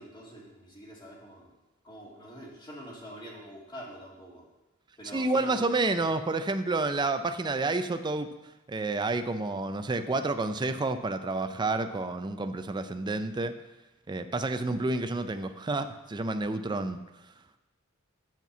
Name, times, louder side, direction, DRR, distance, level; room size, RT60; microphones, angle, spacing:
voice 1, 0.0-1.5 1.8-4.4 5.0-5.6, equal, 20° left, -3 dB, 2.0 m, -45 dB
voice 2, 5.1-13.6 14.1-17.0, right 2 dB, 20° right, 9 dB, 0.4 m, -29 dB
8.2 x 4.5 x 7.1 m, 1.0 s
head